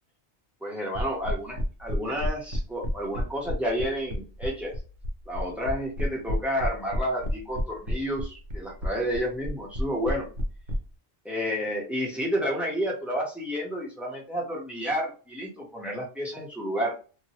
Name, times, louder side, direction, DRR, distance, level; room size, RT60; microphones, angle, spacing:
voice 1, 0.6-4.7 5.3-10.3 11.2-16.9, equal, ahead, -3 dB, 0.9 m, -30 dB
sound 1, 0.9-10.8, equal, 60° right, 0.8 m, -30 dB
2.9 x 2.3 x 2.8 m, 0.36 s
omnidirectional pair, 1.2 m